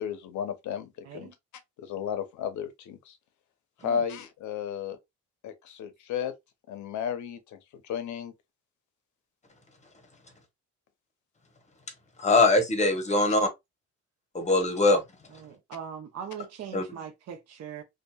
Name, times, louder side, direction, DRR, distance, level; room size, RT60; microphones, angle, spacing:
voice 1, 0.0-1.3 1.8-3.1 3.8-5.0 5.4-6.3 6.7-7.4 7.8-8.3, left 8 dB, 75° left, 0.7 m, -33 dB
voice 2, 12.2-13.5 14.3-15.0 16.7-16.8, left 2 dB, 25° left, 0.9 m, -22 dB
voice 3, 15.4-17.8, right 8 dB, 55° right, 0.7 m, -41 dB
2.7 x 2.3 x 2.2 m
cardioid pair, 90°, 30 cm